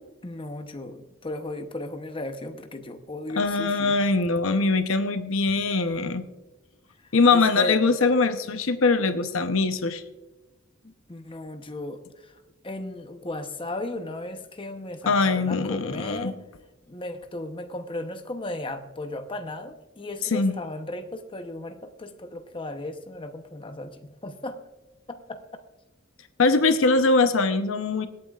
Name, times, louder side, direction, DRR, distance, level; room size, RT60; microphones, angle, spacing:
voice 1, 0.2-3.9 7.3-7.8 10.8-16.4 16.9-24.6 25.1-25.4, left 1 dB, 25° left, 7 dB, 0.8 m, -36 dB
voice 2, 3.4-6.2 7.1-10.0 15.1-16.3 20.3-20.5 26.4-28.1, left 3 dB, 70° left, 9 dB, 0.8 m, -22 dB
25.5 x 8.6 x 2.4 m, 1.1 s
head